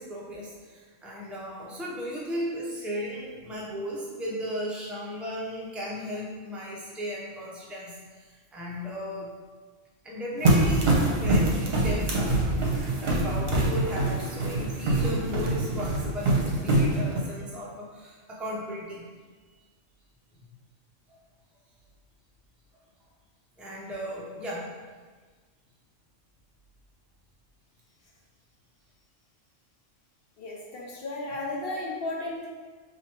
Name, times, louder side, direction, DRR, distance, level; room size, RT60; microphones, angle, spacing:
voice 1, 0.0-9.3 10.0-19.0 23.6-24.7, equal, ahead, -5 dB, 0.3 m, -36 dB
sound 1, 10.4-17.2, right 2 dB, 55° right, 0.9 m, -24 dB
voice 2, 30.4-32.5, left 2 dB, 55° left, -2 dB, 0.8 m, -34 dB
4.6 x 2.8 x 2.9 m, 1.4 s
omnidirectional pair, 1.3 m